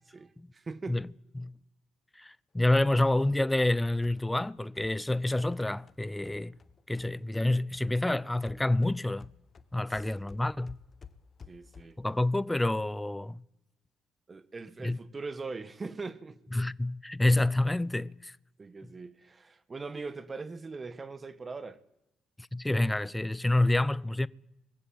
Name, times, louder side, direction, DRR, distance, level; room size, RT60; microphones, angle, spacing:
voice 1, 0.0-1.0 9.9-10.0 11.5-12.0 14.3-16.4 18.6-21.8, right 4 dB, 35° right, 1.5 m, -41 dB
voice 2, 2.1-6.6 6.9-9.3 9.7-10.8 12.0-13.4 14.8-15.0 16.5-18.4 22.4-24.3, left 1 dB, 10° left, 0.7 m, -28 dB
sound 1, 3.2-7.5 7.7-12.1, left 6 dB, 45° left, 1.5 m, -54 dB
21.0 x 15.5 x 9.2 m
hypercardioid pair, 45°, 0 cm